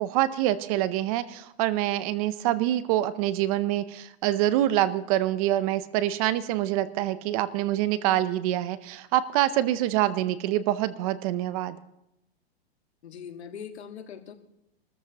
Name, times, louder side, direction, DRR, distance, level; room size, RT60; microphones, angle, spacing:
voice 1, 0.0-11.8, right 13 dB, 35° right, 15 dB, 0.6 m, -26 dB
voice 2, 13.0-14.3, left 7 dB, 85° left, 6 dB, 1.8 m, -41 dB
24.0 x 14.0 x 2.9 m, 0.85 s
hypercardioid pair, 145°, 32 cm